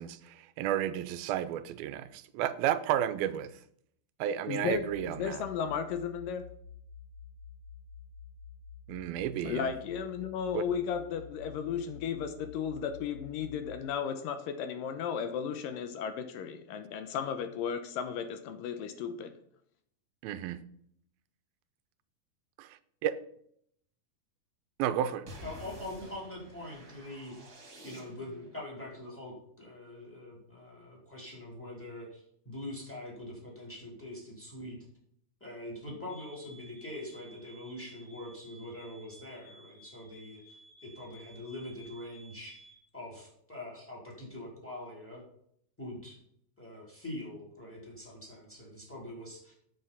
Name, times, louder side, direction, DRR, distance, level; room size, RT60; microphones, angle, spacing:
voice 1, 0.0-3.5 4.2-5.4 8.9-9.7 10.5-10.6 20.2-20.6 22.6-22.7 23.0-23.2 24.8-25.3, right 11 dB, 90° right, 2.6 m, -32 dB
voice 2, 4.5-6.4 9.4-19.3, left 7 dB, 75° left, 2.4 m, -35 dB
sound 1, 4.7-13.8, left 6 dB, 40° left, 4.8 m, -50 dB
sound 2, 25.3-28.5, right 1 dB, 30° right, 2.6 m, -49 dB
voice 3, 25.4-27.5 27.8-34.8 35.4-45.2 45.8-46.2 46.6-49.5, left 1 dB, 5° left, 3.8 m, -44 dB
sound 3, 36.1-42.8, right 2 dB, 20° left, 2.0 m, -56 dB
9.5 x 7.8 x 5.6 m
omnidirectional pair, 4.1 m